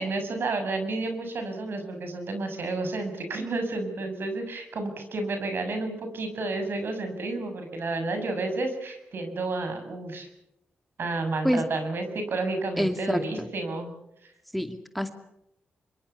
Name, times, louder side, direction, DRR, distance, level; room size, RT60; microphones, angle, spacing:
voice 1, 0.0-10.3 11.0-13.9, right 2 dB, 65° right, 6 dB, 7.0 m, -31 dB
voice 2, 12.8-13.5 14.5-15.1, equal, ahead, 6 dB, 2.4 m, -27 dB
26.0 x 23.5 x 7.0 m, 0.82 s
cardioid pair, 70°, 4 cm